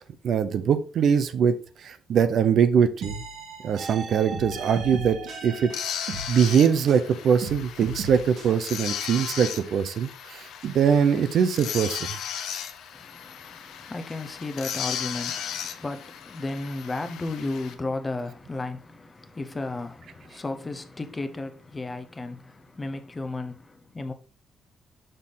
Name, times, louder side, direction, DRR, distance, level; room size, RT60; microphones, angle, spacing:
voice 1, 0.0-1.5 1.8-3.2 3.6-5.7 6.0-12.2, right 7 dB, 55° right, 0.5 m, -22 dB
sound 1, 3.0-7.1 7.4-8.5, right 3 dB, 80° right, 1.6 m, -36 dB
sound 2, 5.7-17.7, left 9 dB, 85° left, 0.7 m, -36 dB
voice 2, 12.9-24.1, left 2 dB, 15° left, 0.6 m, -34 dB
6.5 x 3.7 x 3.9 m
cardioid pair, 160°, 0 cm